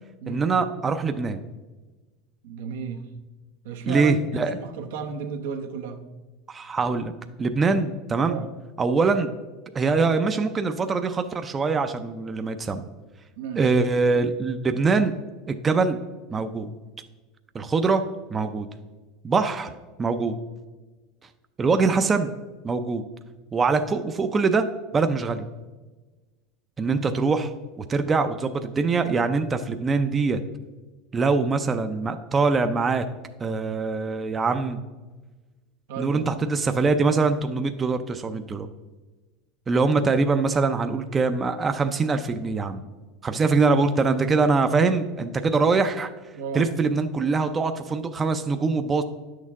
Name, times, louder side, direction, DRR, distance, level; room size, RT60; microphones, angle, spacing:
voice 1, 0.3-1.4 3.9-4.6 6.5-7.1 7.4-8.4 8.8-9.3 9.7-12.9 13.6-15.1 15.5-16.0 16.3-16.7 17.5-18.0 18.3-18.7 19.2-19.7 20.0-20.4 21.6-22.3 22.6-23.0 23.5-24.7 24.9-25.4 26.8-27.5 27.8-30.4 31.1-33.1 33.4-34.8 36.0-38.7 39.7-42.8 43.2-46.1 46.5-49.0, right 4 dB, 20° right, 8 dB, 0.4 m, -23 dB
voice 2, 2.4-3.1 3.6-6.1 8.3-8.5 13.4-13.7 35.9-36.3 46.3-46.7, right 5 dB, 80° right, 5 dB, 0.9 m, -33 dB
9.9 x 6.5 x 3.6 m, 1.3 s
supercardioid pair, 130°, 0 cm